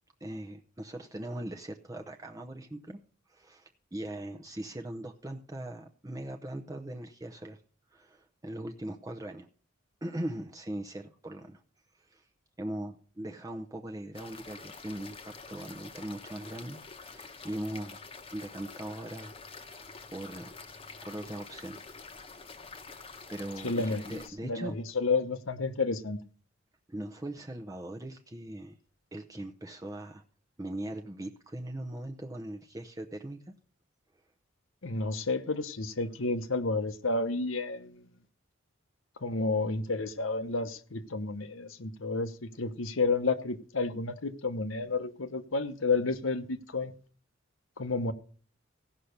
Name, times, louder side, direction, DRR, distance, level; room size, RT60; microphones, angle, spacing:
voice 1, 0.2-3.0 3.3-7.6 7.9-9.5 10.0-11.6 11.9-12.3 12.6-18.0 18.3-20.6 21.0-21.8 22.3-22.4 23.3-24.8 26.9-28.8 29.1-30.2 30.6-33.5, right 1 dB, 15° right, 0.7 m, -40 dB
sound 1, 14.1-24.3, left 4 dB, 30° left, 1.0 m, -47 dB
voice 2, 23.6-26.2 34.8-38.1 39.2-46.9 47.8-48.1, left 3 dB, 80° left, 1.0 m, -31 dB
16.5 x 5.7 x 6.6 m
head